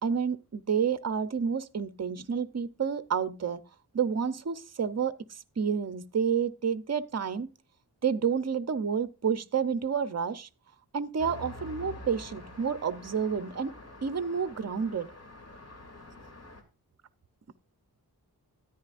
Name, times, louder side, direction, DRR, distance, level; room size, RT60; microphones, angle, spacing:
voice 1, 0.0-3.6 3.9-7.5 8.0-10.5 10.9-13.7 14.0-15.1, right 6 dB, 40° right, 0.7 m, -30 dB
Traffic noise roadway noise, 11.2-16.6, left 1 dB, 40° left, 2.7 m, -46 dB
13.5 x 10.0 x 2.5 m
wide cardioid pair, 95°, 38 cm